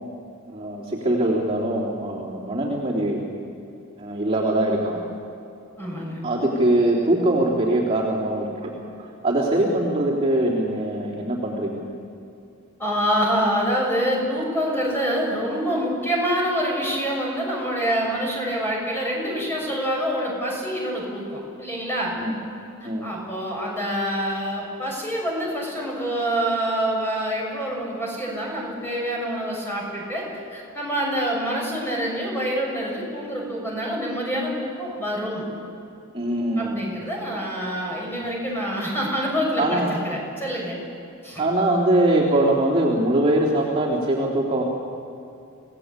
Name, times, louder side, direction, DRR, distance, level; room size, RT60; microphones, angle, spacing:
voice 1, 0.5-3.2 4.0-5.0 6.2-8.7 9.0-11.9 22.2-22.4 22.8-23.1 36.1-36.9 39.6-40.0 41.4-44.6, right 1 dB, 25° right, -6 dB, 3.5 m, -22 dB
voice 2, 5.8-6.2 12.8-22.1 22.8-30.2 30.5-35.5 36.6-40.8 41.2-41.4, equal, 10° left, -2 dB, 6.6 m, -26 dB
27.5 x 18.0 x 8.4 m, 2.7 s
head